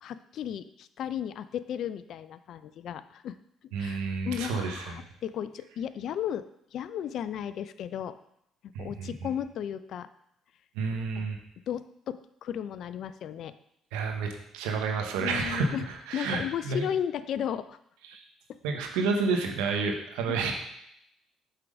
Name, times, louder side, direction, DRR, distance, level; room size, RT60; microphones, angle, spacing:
voice 1, 0.0-3.4 3.8-6.4 6.7-8.2 8.8-10.1 10.9-11.3 11.7-13.5 15.2-15.9 16.1-17.8 20.3-20.5, left 9 dB, 65° left, 14 dB, 0.3 m, -35 dB
voice 2, 3.7-5.0 8.7-9.3 10.7-11.4 13.9-16.9 18.0-18.2 18.6-20.5, right 4 dB, 85° right, 3 dB, 0.9 m, -30 dB
6.5 x 3.6 x 5.0 m, 0.77 s
supercardioid pair, 60°, 0 cm